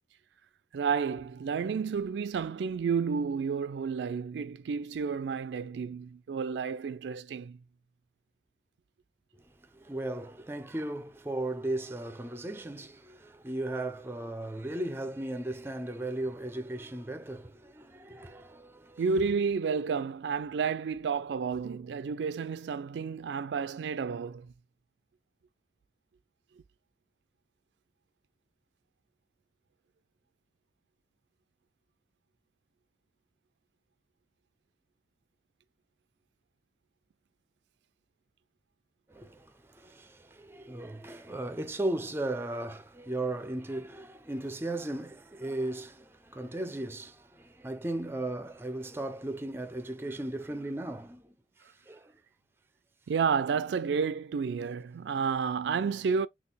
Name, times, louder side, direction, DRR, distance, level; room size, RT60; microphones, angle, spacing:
voice 1, 0.7-7.6 19.0-24.5 53.1-56.3, right 5 dB, 80° right, 0.3 m, -31 dB
voice 2, 9.7-19.0 39.1-51.3 51.6-52.1, right 1 dB, 15° right, 0.4 m, -36 dB
4.1 x 2.3 x 3.3 m
head